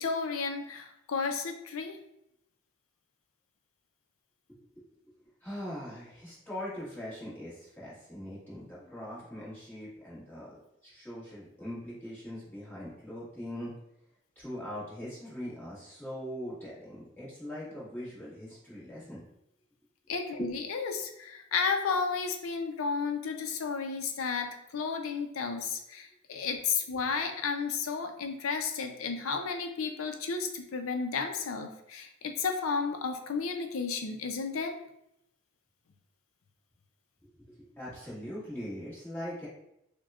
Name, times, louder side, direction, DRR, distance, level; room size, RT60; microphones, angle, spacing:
voice 1, 0.0-2.0 20.1-34.8, left 5 dB, 85° left, 5 dB, 0.5 m, -32 dB
voice 2, 5.4-10.5 10.8-13.7 14.3-19.3 20.4-20.5 37.5-39.5, equal, 10° left, -9 dB, 1.5 m, -41 dB
6.0 x 2.2 x 2.4 m, 0.80 s
head